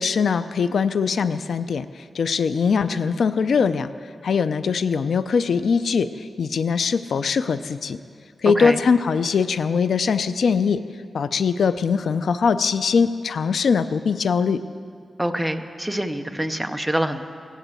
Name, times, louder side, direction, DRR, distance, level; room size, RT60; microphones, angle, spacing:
voice 1, 0.0-3.9 4.2-8.0 8.4-10.8 11.1-14.6, left 5 dB, 70° left, 12 dB, 0.4 m, -21 dB
voice 2, 15.2-17.2, right 1 dB, 5° right, 7 dB, 0.7 m, -25 dB
16.5 x 11.0 x 7.7 m, 2.2 s
wide cardioid pair, 140°, 0 cm